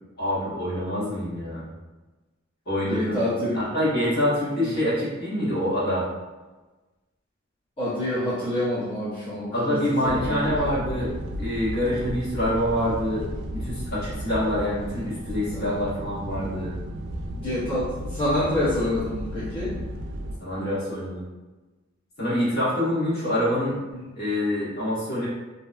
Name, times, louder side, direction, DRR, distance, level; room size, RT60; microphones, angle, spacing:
voice 1, 0.2-1.7 2.7-3.2 3.5-6.1 9.5-16.7 20.4-21.2 22.2-23.8 24.1-25.3, left 1 dB, 50° left, -10 dB, 1.2 m, -26 dB
voice 2, 2.9-3.6 4.6-4.7 7.8-10.7 15.5-15.8 17.3-19.7 23.9-24.1, left 1 dB, 30° left, -12 dB, 0.7 m, -27 dB
sound 1, 10.0-20.4, right 1 dB, 60° right, 0.3 m, -34 dB
2.7 x 2.2 x 2.3 m, 1.2 s
head